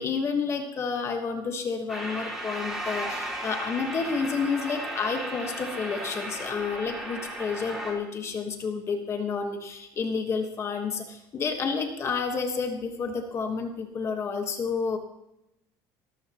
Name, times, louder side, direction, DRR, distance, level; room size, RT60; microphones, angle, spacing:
voice 1, 0.0-15.0, left 5 dB, 30° left, 5 dB, 1.4 m, -30 dB
sound 1, 1.9-7.9, right 1 dB, 5° right, 3.8 m, -35 dB
19.5 x 13.0 x 3.0 m, 0.87 s
cardioid pair, 150°, 9 cm